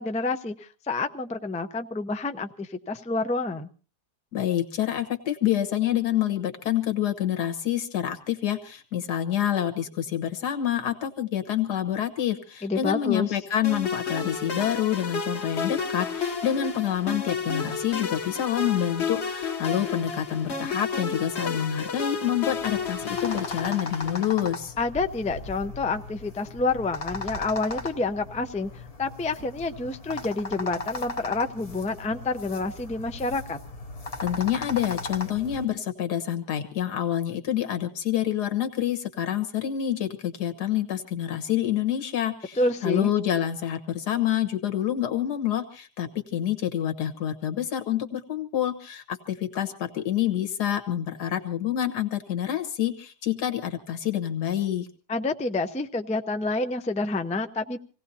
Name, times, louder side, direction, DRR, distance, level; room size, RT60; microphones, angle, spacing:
voice 1, 0.0-3.7 12.6-13.4 24.8-33.6 42.6-43.1 55.1-57.8, left 3 dB, 10° left, 7 dB, 0.3 m, -28 dB
voice 2, 4.3-24.7 34.2-54.9, left 11 dB, 80° left, 6 dB, 1.9 m, -27 dB
sound 1, 13.6-24.3, left 5 dB, 45° left, 1.4 m, -32 dB
sound 2, 22.4-35.6, left 3 dB, 30° left, 0.8 m, -37 dB
26.5 x 17.5 x 2.8 m, 0.37 s
omnidirectional pair, 1.7 m